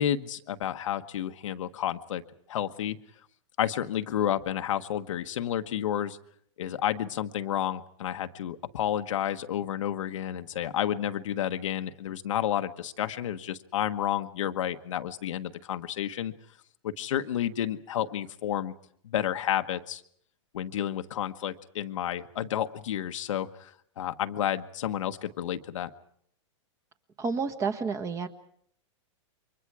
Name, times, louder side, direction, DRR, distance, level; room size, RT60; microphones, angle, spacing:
voice 1, 0.0-2.2 2.5-3.0 3.6-6.2 6.6-16.3 16.8-18.7 19.0-20.0 20.5-25.9, left 10 dB, 80° left, 8 dB, 1.2 m, -31 dB
voice 2, 27.2-28.3, right 5 dB, 20° right, 7 dB, 1.5 m, -30 dB
29.0 x 24.0 x 4.9 m, 0.64 s
hypercardioid pair, 140°, 16 cm